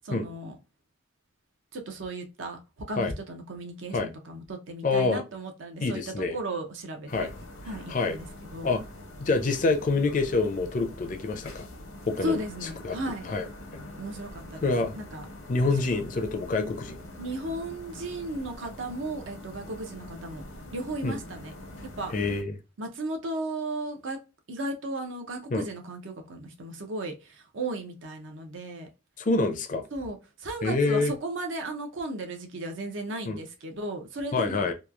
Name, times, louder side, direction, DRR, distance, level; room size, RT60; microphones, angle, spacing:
voice 1, 0.1-0.6 1.7-7.3 7.6-8.7 12.2-13.3 14.0-15.2 15.9-16.0 17.2-20.4 20.7-21.5 22.0-22.1 22.8-24.2 24.5-28.9 29.9-34.7, right 1 dB, 70° right, 0.6 m, -35 dB
voice 2, 4.8-5.2 5.8-6.4 7.1-7.3 7.9-8.2 8.6-8.8 9.2-11.7 12.1-12.4 12.8-13.0 13.3-13.5 14.6-14.9 15.5-17.0 21.0-21.2 22.1-22.5 25.5-25.6 29.2-29.8 30.6-31.1 33.3-33.4 34.3-34.7, left 3 dB, 40° left, 0.4 m, -26 dB
sound 1, 7.1-22.4, left 1 dB, 90° left, 0.8 m, -44 dB
3.0 x 2.3 x 2.3 m
head